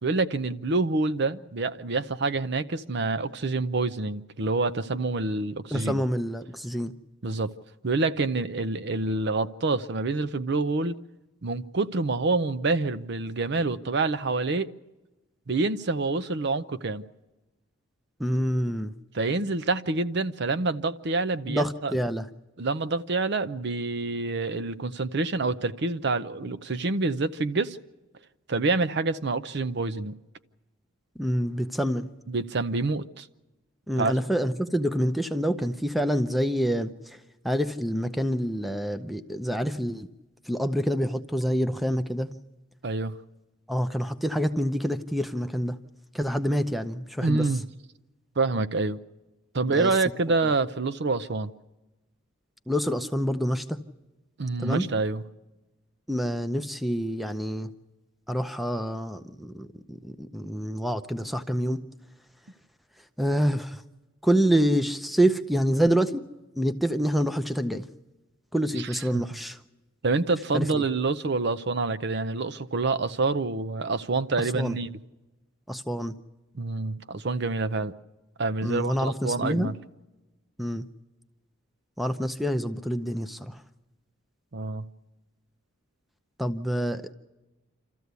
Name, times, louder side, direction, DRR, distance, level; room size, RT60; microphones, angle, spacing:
voice 1, 0.0-6.0 7.2-7.5 7.8-10.9 11.4-14.7 15.5-17.0 19.1-21.9 22.6-27.8 28.5-30.1 32.3-33.3 34.0-34.1 42.8-43.2 47.2-47.6 48.4-49.0 49.5-51.5 54.4-55.2 68.8-69.2 70.0-74.9 76.6-77.9 78.4-79.7 84.5-84.9, right 3 dB, 55° right, 0.6 m, -27 dB
voice 2, 5.7-6.9 18.2-18.9 21.5-22.3 31.2-32.1 33.9-37.2 37.4-40.1 40.5-42.3 43.7-45.8 46.1-47.5 49.6-49.9 52.7-53.8 54.6-54.9 56.1-57.7 58.3-61.8 63.2-63.8 64.2-66.3 66.6-67.8 68.5-69.6 70.5-70.8 74.5-74.8 75.7-76.2 78.6-79.7 80.6-80.9 82.0-83.6 86.4-87.1, equal, ahead, 0.6 m, -27 dB
27.0 x 14.0 x 8.2 m
head